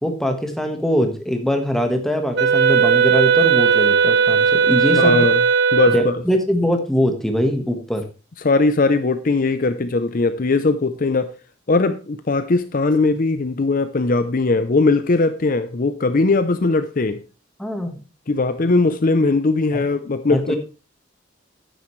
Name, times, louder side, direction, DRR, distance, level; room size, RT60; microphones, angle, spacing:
voice 1, 0.0-5.2 5.9-8.0 17.6-18.0 19.7-19.8 20.3-20.4, equal, ahead, 4 dB, 1.4 m, -22 dB
Wind instrument woodwind instrument, 2.3-6.2, right 6 dB, 60° right, 0.7 m, -16 dB
voice 2, 4.9-5.4 5.7-6.2 8.4-11.3 11.7-17.2 18.3-20.6, left 3 dB, 45° left, 10 dB, 0.6 m, -19 dB
10.0 x 9.3 x 3.2 m, 0.33 s
head